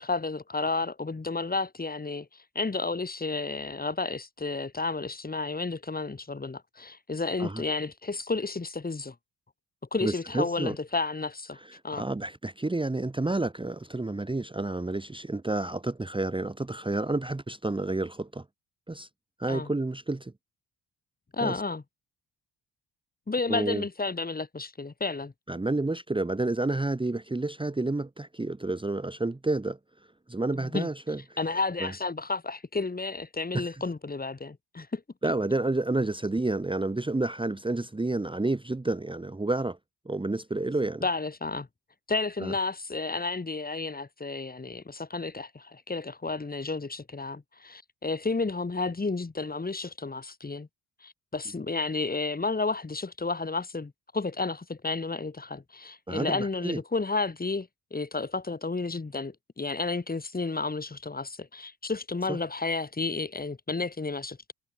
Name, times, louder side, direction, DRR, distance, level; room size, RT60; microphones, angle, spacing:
voice 1, 0.0-9.2 9.9-11.6 11.8-12.0 19.5-19.7 21.3-21.8 23.3-25.3 30.5-30.9 31.4-35.0 41.0-41.7 42.1-50.7 51.0-64.5, left 3 dB, 20° left, 2.1 m, -32 dB
voice 2, 10.0-10.8 11.6-18.4 18.9-19.1 19.4-20.3 21.4-21.6 23.5-23.8 25.5-29.8 30.3-31.2 31.8-31.9 33.5-33.7 35.2-39.8 40.0-41.0 42.4-42.5 56.1-56.8 62.3-62.4, right 2 dB, 10° right, 1.3 m, -30 dB
cardioid pair, 125°, 43 cm